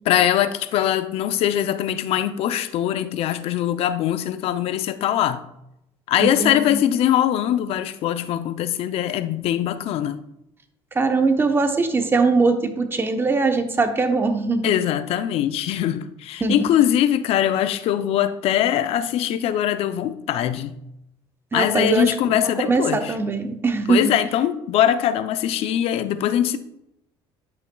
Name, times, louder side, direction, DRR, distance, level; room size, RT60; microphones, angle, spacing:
voice 1, 0.1-5.5 6.1-10.2 14.6-20.8 21.5-23.1 23.9-26.6, left 11 dB, 65° left, 0.6 m, -22 dB
voice 2, 6.2-6.8 10.9-14.6 16.4-16.7 21.5-22.1 22.4-24.1, right 3 dB, 20° right, 0.8 m, -21 dB
10.0 x 5.8 x 2.3 m
supercardioid pair, 95°, 11 cm